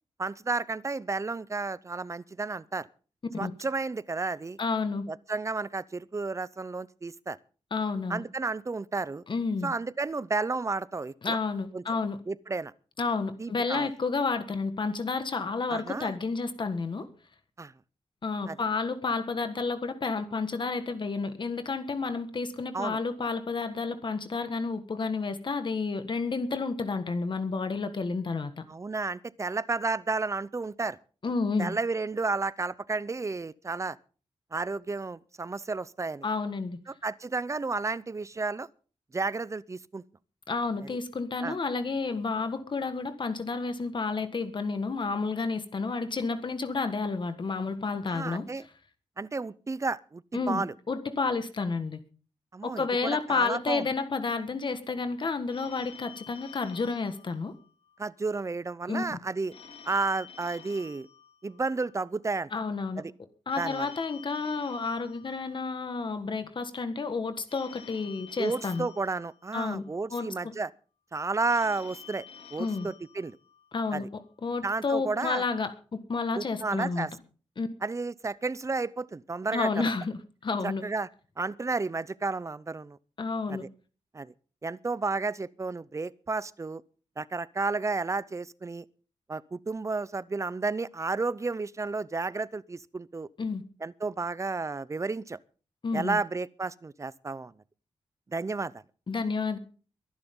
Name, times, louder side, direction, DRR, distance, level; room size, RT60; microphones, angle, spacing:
voice 1, 0.2-2.9 3.4-4.6 5.1-7.4 8.1-9.2 9.6-11.4 11.7-11.8 12.3-12.7 13.4-13.9 15.7-16.1 17.6-17.7 18.5-18.6 22.7-23.0 28.7-31.0 31.6-34.0 34.5-36.3 37.0-38.7 39.1-40.0 41.4-41.6 48.1-48.6 49.2-50.2 50.5-50.7 52.5-53.8 58.0-59.5 59.8-61.1 61.4-62.5 63.0-63.1 63.6-63.9 68.4-70.7 71.1-72.2 72.5-73.4 73.9-74.1 74.6-75.4 76.4-77.1 77.8-79.9 80.6-81.1 81.4-83.0 83.5-83.6 84.1-84.3 84.6-86.8 87.2-88.8 89.3-93.3 93.8-95.4 95.9-97.5 98.3-98.7, right 3 dB, 30° right, 0.6 m, -32 dB
voice 2, 4.6-5.0 7.7-8.2 9.3-9.7 11.2-12.2 13.0-17.1 18.2-28.6 31.2-31.8 36.2-36.8 40.5-48.7 50.3-52.0 52.6-57.5 58.9-59.0 62.5-63.0 63.5-68.9 69.5-69.8 70.1-70.5 72.6-72.9 73.7-74.0 74.4-77.1 77.6-77.7 79.5-80.1 80.4-80.8 83.2-83.6 93.4-93.6 95.8-96.2 99.1-99.6, left 4 dB, 45° left, 1.6 m, -30 dB
Telephone, 55.5-58.0 59.5-62.0 63.5-66.0 67.5-70.0 71.5-74.0, left 7 dB, 70° left, 3.9 m, -50 dB
22.5 x 11.0 x 3.8 m
wide cardioid pair, 110°, 11 cm